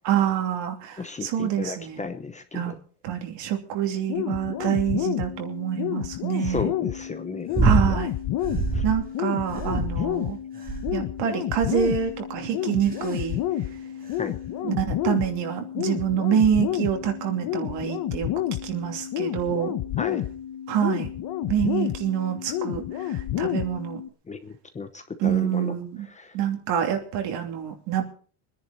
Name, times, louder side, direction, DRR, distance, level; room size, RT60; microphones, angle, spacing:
voice 1, 0.0-2.0 2.5-2.7 3.0-6.7 7.6-8.1 8.8-10.4 10.9-13.8 14.6-18.3 18.6-19.7 20.7-21.1 21.5-24.0 25.2-26.1 26.3-28.0, right 9 dB, 65° right, 4 dB, 3.0 m, -26 dB
voice 2, 1.0-2.6 6.4-7.6 8.7-8.8 14.2-14.3 20.0-20.2 24.3-25.7 26.2-26.4, left 4 dB, 15° left, 8 dB, 0.8 m, -34 dB
sound 1, 4.1-24.1, left 12 dB, 50° left, 1.0 m, -30 dB
sound 2, 7.5-8.0 8.4-9.0 9.5-10.2 10.7-11.1 11.8-12.1 12.8-13.2 14.1-14.2, right 3 dB, 20° right, 2.0 m, -24 dB
23.5 x 10.5 x 4.1 m, 0.43 s
cardioid pair, 155°, 46 cm